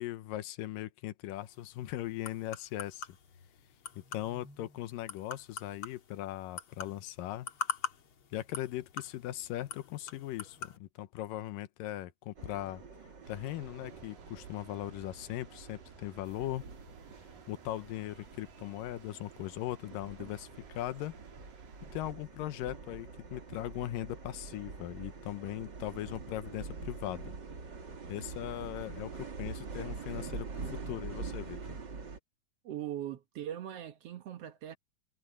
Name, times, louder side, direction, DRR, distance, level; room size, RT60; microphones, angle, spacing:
voice 1, 0.0-3.1 4.1-7.5 8.3-12.8 13.3-16.6 17.5-21.2 21.9-27.3 28.1-31.8, left 14 dB, 90° left, 2.5 m, -39 dB
sound 1, 1.3-10.8, left 6 dB, 45° left, 2.1 m, -44 dB
sound 2, 12.4-32.2, right 4 dB, 35° right, 2.6 m, -45 dB
sound 3, 13.2-22.1, right 6 dB, 80° right, 4.5 m, -56 dB
voice 2, 32.6-34.8, right 11 dB, 65° right, 1.6 m, -40 dB
omnidirectional pair, 3.9 m